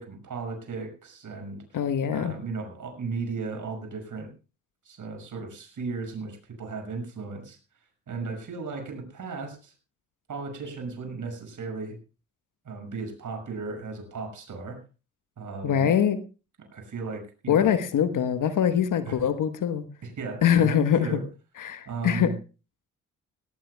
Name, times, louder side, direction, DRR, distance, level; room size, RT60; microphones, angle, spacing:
voice 1, 0.0-1.6 2.1-4.3 4.8-7.6 8.1-9.7 10.3-12.0 12.6-14.8 15.4-15.9 16.7-17.7 19.0-19.2 20.0-21.3 21.9-22.4, right 4 dB, 50° right, 5 dB, 6.3 m, -35 dB
voice 2, 1.7-2.4 15.6-16.2 17.5-19.8 20.4-21.2 21.6-22.3, left 9 dB, 55° left, 11 dB, 1.3 m, -23 dB
20.0 x 18.0 x 2.3 m, 0.33 s
hypercardioid pair, 45°, 38 cm